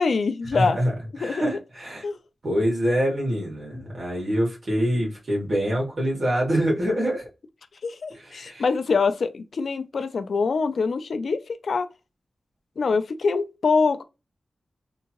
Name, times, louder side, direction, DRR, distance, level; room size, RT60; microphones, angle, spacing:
voice 1, 0.0-0.8 1.2-1.4 2.0-2.2 3.7-3.8 7.8-11.9 12.8-14.0, left 4 dB, 75° left, 0.4 m, -24 dB
voice 2, 0.5-2.0 2.4-7.3 8.1-8.7, equal, 50° right, 1.9 m, -25 dB
3.6 x 2.7 x 2.9 m
wide cardioid pair, 125°, 0 cm